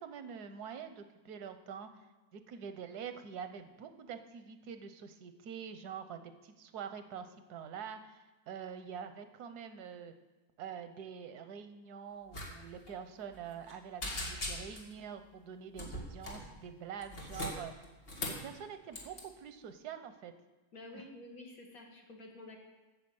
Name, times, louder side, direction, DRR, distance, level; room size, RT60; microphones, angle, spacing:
voice 1, 0.0-1.9 2.3-10.1 10.6-17.7 18.2-20.3 20.9-21.0, right 7 dB, 90° right, 9 dB, 1.3 m, -45 dB
sound 1, 12.3-12.5 12.7-12.9 13.3-13.7 14.0-14.9 15.7-16.5 17.0-18.5 18.9-19.2, left 1 dB, 40° left, 1.9 m, -40 dB
voice 2, 20.7-22.6, left 2 dB, 65° left, 0 dB, 2.1 m, -50 dB
8.6 x 6.6 x 7.8 m, 1.2 s
omnidirectional pair, 1.6 m